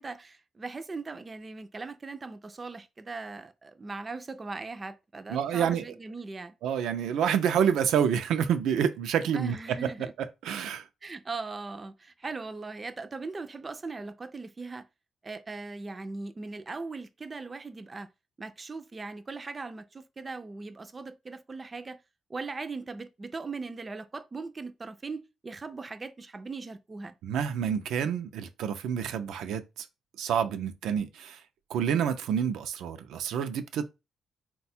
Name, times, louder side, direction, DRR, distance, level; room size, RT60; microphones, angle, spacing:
voice 1, 0.0-6.5 9.3-10.1 11.0-14.8 15.2-18.1 18.4-22.0 22.3-27.1, right 3 dB, 20° right, 0.3 m, -39 dB
voice 2, 5.3-5.9 6.6-10.9 27.2-29.9 30.2-31.4 31.7-33.9, right 8 dB, 90° right, 0.4 m, -28 dB
4.2 x 2.2 x 4.2 m
cardioid pair, 150°, 0 cm